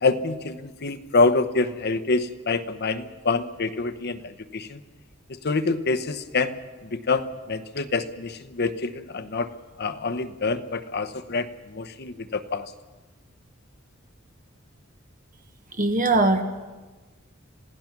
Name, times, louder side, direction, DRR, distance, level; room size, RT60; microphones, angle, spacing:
voice 1, 0.0-4.8 5.3-9.5 9.8-12.7, left 3 dB, 55° left, 10 dB, 0.9 m, -26 dB
voice 2, 15.8-16.4, right 2 dB, 40° right, 6 dB, 1.5 m, -20 dB
27.0 x 16.5 x 6.0 m, 1.3 s
head